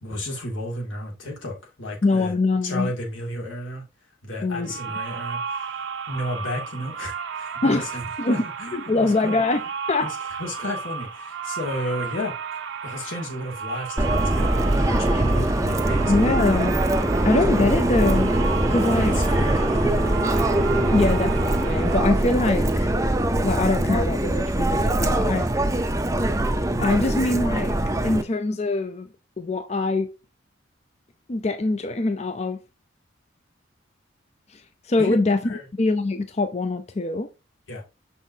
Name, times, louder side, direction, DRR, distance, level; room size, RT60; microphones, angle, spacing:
voice 1, 0.0-2.3 2.6-3.9 4.2-5.7 6.1-9.4 10.0-12.3 12.8-16.5 17.2-17.3 17.6-17.9 18.8-20.2 35.0-35.1 35.4-35.6 37.7-37.8, left 1 dB, 90° left, 2.4 m, -33 dB
voice 2, 2.0-2.9 4.4-4.7 7.6-7.9 8.2-8.4 8.7-10.1 16.1-16.7 17.2-18.3 18.7-19.1 20.9-23.0 23.4-25.5 26.8-27.7 28.0-29.1 29.4-30.1 31.3-32.6 34.9-35.4 35.8-37.3, left 2 dB, 35° left, 0.5 m, -23 dB
sound 1, 4.6-22.0, right 6 dB, 75° right, 0.9 m, -33 dB
Subway metro underground, 14.0-28.2, right 1 dB, 15° right, 0.5 m, -22 dB
6.3 x 5.5 x 2.8 m
head